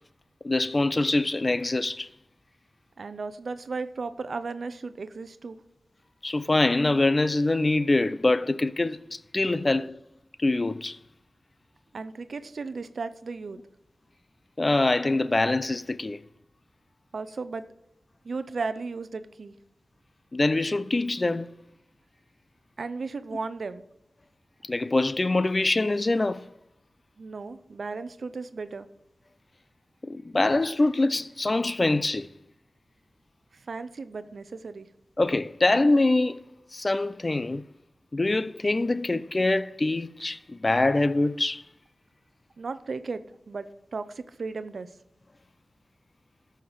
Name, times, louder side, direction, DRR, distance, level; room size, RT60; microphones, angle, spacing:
voice 1, 0.4-2.1 6.2-10.0 10.4-11.0 14.6-16.2 20.3-21.5 24.6-26.5 30.0-32.3 35.2-36.4 36.7-37.6 38.1-41.6, left 2 dB, 35° left, 0.5 m, -24 dB
voice 2, 3.0-5.6 11.9-13.6 17.1-17.7 18.2-19.6 22.8-23.8 27.2-28.9 33.5-34.9 42.6-44.9, right 4 dB, 75° right, 0.6 m, -35 dB
14.0 x 5.7 x 4.8 m
cardioid pair, 55°, 0 cm